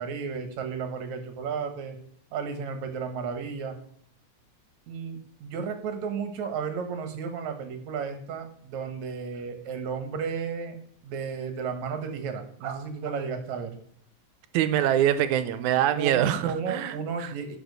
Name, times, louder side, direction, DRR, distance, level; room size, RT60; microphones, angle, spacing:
voice 1, 0.0-2.0 2.3-3.8 4.9-10.8 11.0-13.7 16.0-17.6, right 6 dB, 70° right, 7 dB, 2.5 m, -33 dB
voice 2, 14.5-17.3, right 11 dB, 90° right, 12 dB, 2.1 m, -24 dB
10.5 x 4.7 x 6.5 m, 0.64 s
omnidirectional pair, 3.4 m